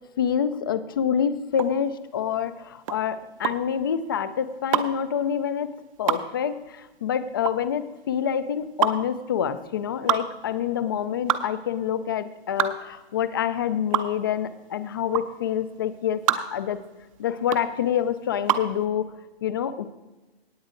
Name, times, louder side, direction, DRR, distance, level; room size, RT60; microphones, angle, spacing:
voice 1, 0.2-5.7 6.0-16.8 17.2-19.1 19.4-19.9, left 8 dB, 25° left, 13 dB, 0.3 m, -27 dB
sound 1, 1.5-18.8, right 10 dB, 35° right, 0.6 m, -28 dB
18.0 x 7.9 x 3.8 m, 1.1 s
hypercardioid pair, 145°, 32 cm